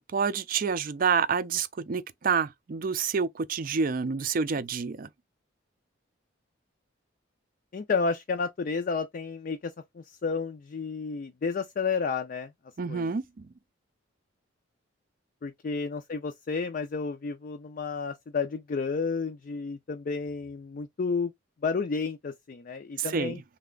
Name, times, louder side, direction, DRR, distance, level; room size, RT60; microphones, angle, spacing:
voice 1, 0.0-5.1 12.8-13.2 23.1-23.3, right 5 dB, 45° right, 0.4 m, -28 dB
voice 2, 7.7-12.5 12.9-13.2 15.4-21.3 21.6-23.4, left 4 dB, 45° left, 0.4 m, -31 dB
3.4 x 2.1 x 3.7 m
head